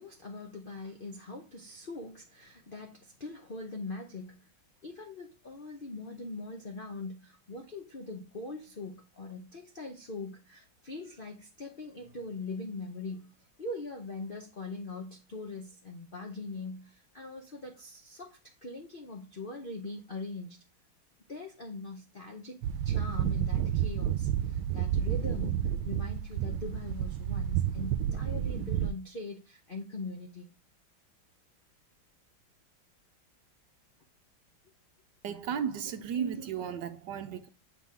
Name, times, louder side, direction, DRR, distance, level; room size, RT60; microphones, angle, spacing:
voice 1, 0.0-4.5 4.8-13.3 13.6-20.6 21.3-22.5 22.8-30.5, left 3 dB, 55° left, 0.5 m, -42 dB
sound 1, 22.6-28.9, right 10 dB, 85° right, 1.4 m, -30 dB
voice 2, 35.2-37.5, right 8 dB, 70° right, 1.2 m, -34 dB
7.6 x 4.0 x 3.4 m
omnidirectional pair, 2.1 m